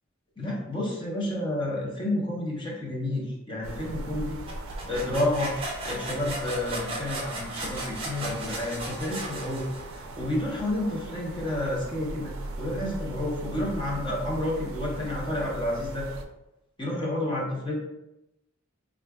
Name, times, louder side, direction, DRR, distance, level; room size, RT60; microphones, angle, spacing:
voice 1, 0.4-4.4 4.8-5.5 5.8-9.7 9.9-16.1 16.8-17.8, left 1 dB, 25° left, -3 dB, 0.7 m, -30 dB
sound 1, 3.6-16.2, right 2 dB, 80° right, 0.4 m, -39 dB
sound 2, 4.5-10.1, right 2 dB, 25° right, 0.6 m, -36 dB
4.6 x 2.4 x 2.2 m, 0.93 s
head